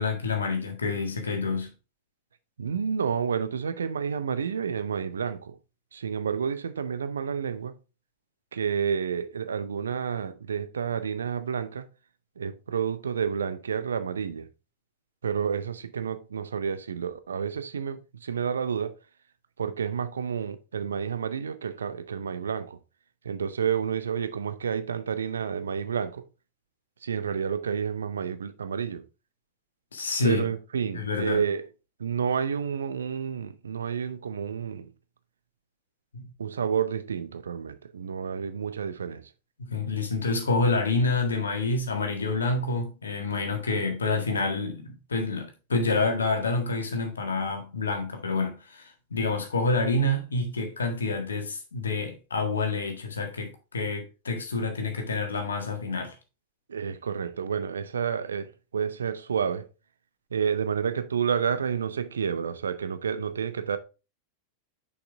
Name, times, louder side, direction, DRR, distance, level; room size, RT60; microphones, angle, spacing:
voice 1, 0.0-1.7 29.9-30.4 30.9-31.4 36.1-36.3 39.6-56.1, left 3 dB, 70° left, 1.6 m, -28 dB
voice 2, 2.6-5.6 5.9-7.8 8.5-11.9 12.4-14.5 15.2-19.0 19.6-22.8 23.2-26.2 27.0-29.0 30.2-31.7 32.0-34.9 36.4-39.3 56.7-59.7 60.3-63.8, right 7 dB, 70° right, 0.6 m, -30 dB
6.5 x 5.6 x 3.4 m
figure-of-eight pair, 90°, 0 cm